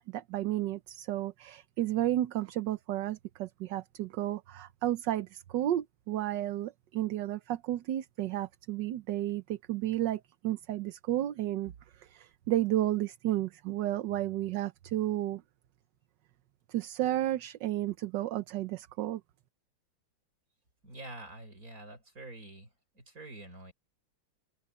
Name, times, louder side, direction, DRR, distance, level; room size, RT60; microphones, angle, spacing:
voice 1, 0.1-15.4 16.7-19.2, right 13 dB, 75° right, 1.4 m, -32 dB
voice 2, 20.8-22.7 22.9-23.7, right 2 dB, 45° right, 6.5 m, -46 dB
open air
omnidirectional pair, 2.0 m